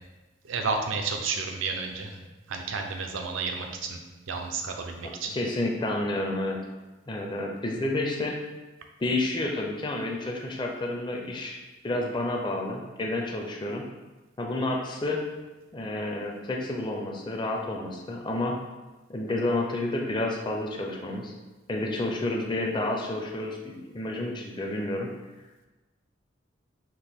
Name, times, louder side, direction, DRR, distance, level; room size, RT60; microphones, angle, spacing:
voice 1, 0.4-2.2 2.5-4.0 4.3-5.4, right 4 dB, 85° right, 3 dB, 0.5 m, -31 dB
voice 2, 5.3-6.6 7.1-8.4 9.0-13.8 14.4-15.2 15.7-18.6 19.1-21.3 21.7-25.1, left 2 dB, 25° left, 1 dB, 0.5 m, -30 dB
5.9 x 2.6 x 3.5 m, 1.1 s
head